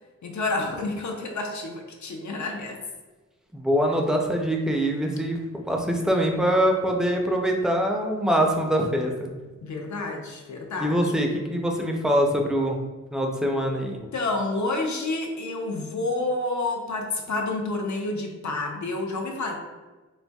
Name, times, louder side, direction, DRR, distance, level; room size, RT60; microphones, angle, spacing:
voice 1, 0.2-2.8 9.6-11.1 14.1-19.6, left 2 dB, 70° left, 2 dB, 0.6 m, -29 dB
voice 2, 3.5-9.3 10.8-12.8 13.1-13.9, equal, ahead, 1 dB, 0.4 m, -24 dB
4.2 x 2.5 x 2.2 m, 1.3 s
wide cardioid pair, 100°, 30 cm